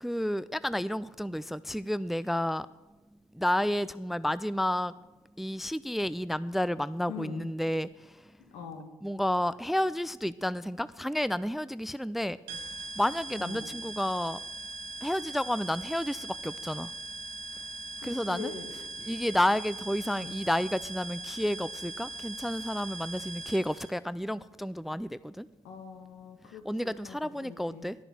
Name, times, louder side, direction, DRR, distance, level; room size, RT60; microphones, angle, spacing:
voice 1, 0.0-2.7 3.4-4.9 5.4-7.9 9.0-12.4 13.0-14.4 15.0-16.9 18.0-18.5 19.0-25.5 26.7-28.0, left 1 dB, ahead, 17 dB, 0.3 m, -31 dB
voice 2, 7.1-7.5 8.5-8.9 13.4-13.7 18.0-18.7 20.0-20.4 25.6-27.9, left 6 dB, 75° left, 4 dB, 2.0 m, -43 dB
sound 1, 12.5-23.9, right 3 dB, 90° right, 1.1 m, -41 dB
11.0 x 6.9 x 7.4 m, 1.1 s
supercardioid pair, 65°, 12 cm